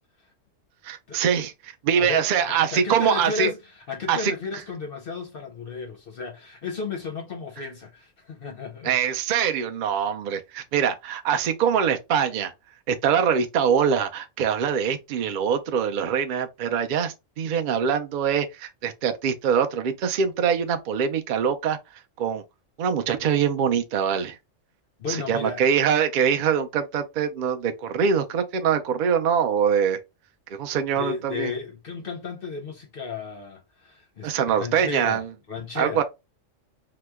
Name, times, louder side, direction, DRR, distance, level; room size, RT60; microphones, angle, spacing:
voice 1, 0.8-3.5 4.1-4.3 8.8-12.5 12.9-21.8 22.2-22.4 22.8-24.3 25.1-30.0 30.5-31.5 34.2-35.3 35.7-36.0, right 7 dB, 60° right, 0.5 m, -23 dB
voice 2, 1.9-3.6 3.9-8.9 25.0-25.6 31.0-34.3 34.6-36.0, left 4 dB, 55° left, 0.7 m, -34 dB
2.9 x 2.1 x 3.4 m
omnidirectional pair, 1.3 m